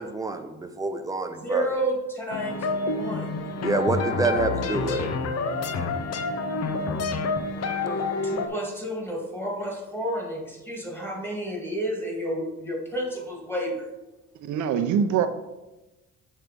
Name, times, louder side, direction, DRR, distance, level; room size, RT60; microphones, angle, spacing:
voice 1, 0.0-1.7 3.6-5.1, right 3 dB, 10° right, 7 dB, 0.7 m, -27 dB
voice 2, 1.3-3.3 7.8-13.9, right 1 dB, 5° left, -1 dB, 2.0 m, -31 dB
sound 1, 2.3-8.5, left 3 dB, 55° left, 0.7 m, -28 dB
voice 3, 14.5-15.3, right 8 dB, 75° right, 9 dB, 0.7 m, -23 dB
7.3 x 3.3 x 5.2 m, 1.1 s
cardioid pair, 90°, 30 cm